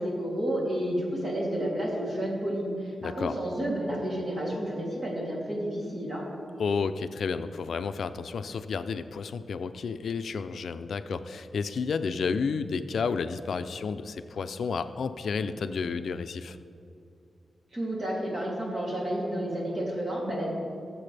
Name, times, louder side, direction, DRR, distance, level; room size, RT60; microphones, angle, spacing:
voice 1, 0.0-6.2 17.7-20.5, right 1 dB, 40° right, -4 dB, 2.9 m, -31 dB
voice 2, 3.0-3.4 6.6-16.6, left 5 dB, 80° left, 10 dB, 0.4 m, -31 dB
18.5 x 7.6 x 3.4 m, 2.5 s
wide cardioid pair, 140°, 0 cm